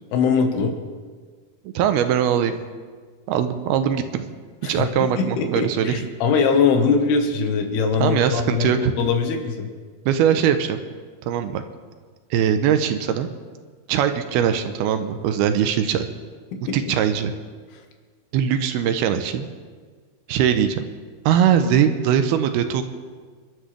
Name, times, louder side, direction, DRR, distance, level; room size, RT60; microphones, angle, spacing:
voice 1, 0.1-0.8 4.6-4.9 5.2-9.7 16.7-16.8, left 5 dB, 90° left, 4 dB, 3.5 m, -21 dB
voice 2, 1.6-2.6 3.3-4.3 4.6-6.1 8.0-8.9 10.1-10.8 11.2-11.6 12.3-13.3 13.9-16.1 16.7-17.3 18.3-19.5 20.3-20.8 21.3-22.8, right 9 dB, 90° right, 8 dB, 2.8 m, -21 dB
28.0 x 12.5 x 3.4 m, 1.5 s
omnidirectional pair, 4.5 m